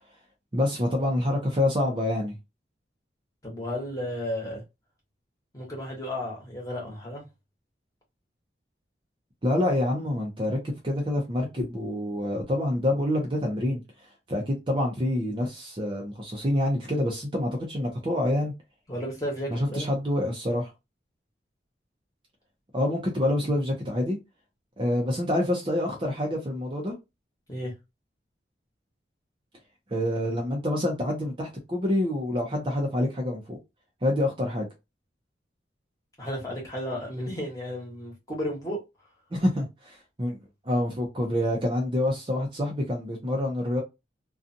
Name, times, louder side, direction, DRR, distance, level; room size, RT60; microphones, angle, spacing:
voice 1, 0.5-2.4 9.4-13.8 14.3-18.5 19.5-20.7 22.7-24.2 24.8-26.9 29.9-33.6 34.0-34.7 39.3-40.4 40.7-43.8, left 1 dB, 30° right, 0.6 m, -27 dB
voice 2, 3.4-4.6 5.5-7.3 18.9-19.9 27.5-27.7 36.2-38.8, equal, 20° left, 1.2 m, -33 dB
2.6 x 2.3 x 2.6 m
head